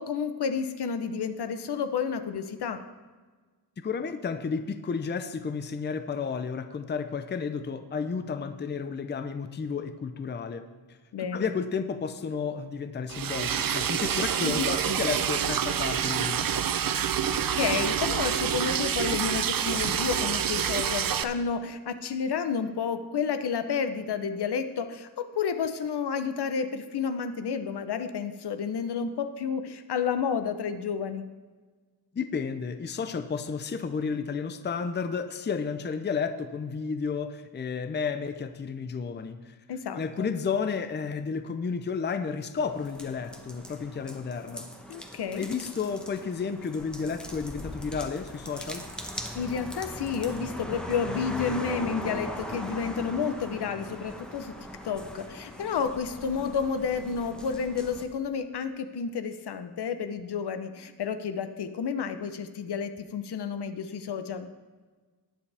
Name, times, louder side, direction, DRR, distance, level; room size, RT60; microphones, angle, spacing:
voice 1, 0.0-2.8 11.1-11.5 14.4-14.7 17.3-31.3 39.7-40.3 44.9-45.4 49.3-54.5 54.8-64.5, left 6 dB, 75° left, 9 dB, 0.9 m, -31 dB
voice 2, 3.8-10.6 11.2-16.7 32.1-39.6 40.0-44.7 45.3-48.8, left 5 dB, 25° left, 9 dB, 0.5 m, -32 dB
Liquid, 13.1-21.2, right 9 dB, 55° right, 0.6 m, -27 dB
sound 1, 42.6-58.1, equal, ahead, 1.0 m, -40 dB
19.5 x 7.2 x 3.4 m, 1.4 s
wide cardioid pair, 150°, 40 cm